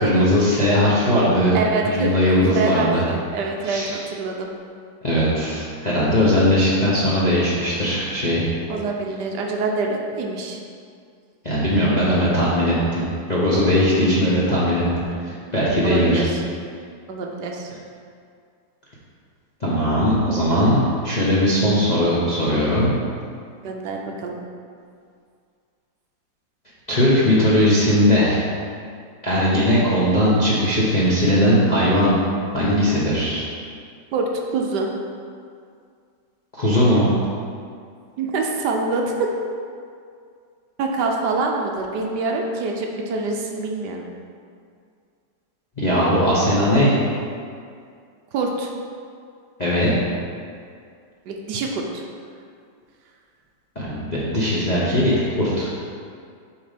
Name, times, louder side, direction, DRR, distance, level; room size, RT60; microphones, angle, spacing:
voice 1, 0.0-3.0 3.6-4.1 5.0-8.4 11.4-16.3 19.6-22.9 26.9-28.4 29.2-32.2 32.5-33.4 36.5-37.1 45.8-46.9 49.6-49.9 53.8-55.7, equal, 35° left, -8 dB, 0.7 m, -19 dB
voice 2, 1.5-2.2 2.5-4.5 8.7-10.6 13.9-14.1 15.8-16.4 17.1-17.7 23.6-24.4 34.1-34.9 38.2-39.4 40.8-44.1 48.3-48.7 51.3-52.0, right 3 dB, 75° right, 1 dB, 1.2 m, -25 dB
7.5 x 2.8 x 5.0 m, 2.3 s
omnidirectional pair, 1.9 m